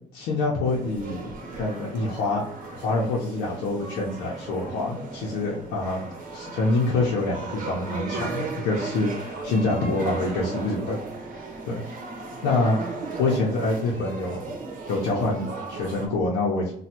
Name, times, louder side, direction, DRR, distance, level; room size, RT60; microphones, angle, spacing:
voice 1, 0.1-6.0 6.3-11.0 11.6-11.8 12.4-12.8 13.2-14.4 14.9-16.7, left 2 dB, 90° left, -5 dB, 0.7 m, -26 dB
sound 1, 0.6-16.1, right 3 dB, 50° right, 0.8 m, -36 dB
3.2 x 2.2 x 2.9 m, 0.66 s
cardioid pair, 110°, 17 cm